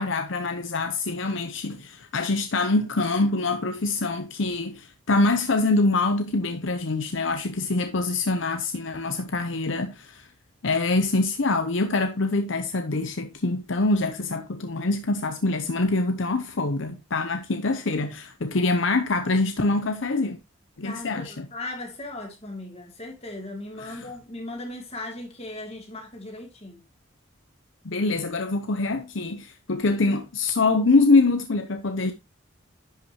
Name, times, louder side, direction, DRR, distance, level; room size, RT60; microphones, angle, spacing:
voice 1, 0.0-10.3 10.6-20.4 20.8-21.5 23.8-24.1 27.8-32.1, left 3 dB, 65° left, 0.7 m, -24 dB
voice 2, 20.8-26.8, left 2 dB, 30° left, 2.8 m, -37 dB
11.0 x 5.7 x 3.0 m
head